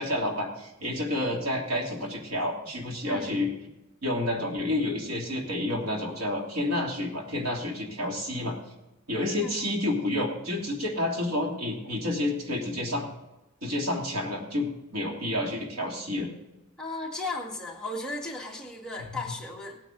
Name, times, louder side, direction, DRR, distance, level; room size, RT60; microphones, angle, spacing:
voice 1, 0.0-3.5 4.0-8.6 9.1-13.1 13.6-16.3 19.1-19.2, left 1 dB, 85° right, -1 dB, 3.1 m, -29 dB
voice 2, 3.0-3.4 9.1-9.7 16.8-19.8, left 2 dB, 5° left, -3 dB, 1.8 m, -36 dB
18.5 x 9.2 x 3.9 m, 0.97 s
head